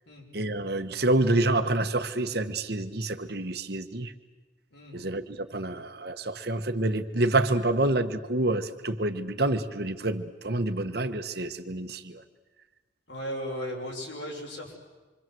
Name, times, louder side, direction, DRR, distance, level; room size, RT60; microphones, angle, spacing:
voice 1, 0.3-4.1 4.9-12.2, right 2 dB, 55° right, 8 dB, 1.4 m, -27 dB
voice 2, 4.7-5.0 13.1-14.7, equal, 75° left, 0 dB, 6.6 m, -36 dB
26.5 x 25.0 x 7.8 m, 1.3 s
head